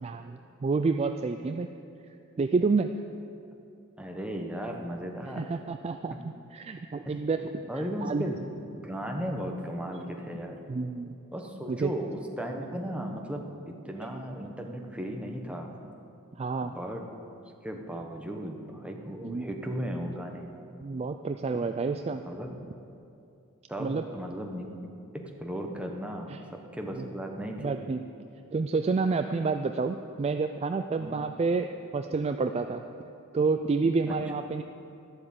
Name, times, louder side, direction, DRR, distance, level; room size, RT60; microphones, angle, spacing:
voice 1, 0.0-1.7 2.4-2.9 5.4-6.1 6.5-7.5 8.0-8.3 10.7-11.1 11.7-11.9 16.4-16.7 19.2-19.5 20.8-22.2 23.8-24.0 26.3-26.4 27.0-27.1 27.6-28.0 28.5-31.7 31.9-32.8 33.3-34.6, right 4 dB, 30° right, 7 dB, 0.3 m, -29 dB
voice 2, 4.0-5.4 6.1-6.2 7.0-7.2 7.7-8.4 8.7-10.6 11.3-15.7 16.6-17.0 17.6-20.5 22.2-22.5 23.7-24.7 25.4-27.8 31.0-31.2 34.1-34.2, equal, 5° right, 1 dB, 1.0 m, -36 dB
12.0 x 7.9 x 7.3 m, 2.6 s
head